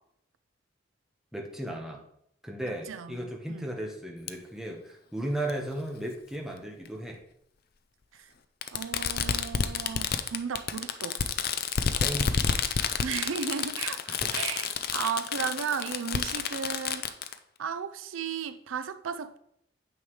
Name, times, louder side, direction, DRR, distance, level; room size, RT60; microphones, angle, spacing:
voice 1, 1.3-2.0 2.4-7.2 12.0-12.4 12.8-13.0 14.2-14.3, right 1 dB, 5° right, 1.1 m, -35 dB
voice 2, 2.9-3.7 8.1-8.3 8.7-11.2 13.0-17.1 17.6-19.4, right 6 dB, 90° right, 0.5 m, -35 dB
Fireworks, 4.3-4.4 5.5-5.6 6.9-7.0 8.6-17.3, left 6 dB, 50° left, 0.5 m, -30 dB
9.0 x 7.3 x 3.2 m
head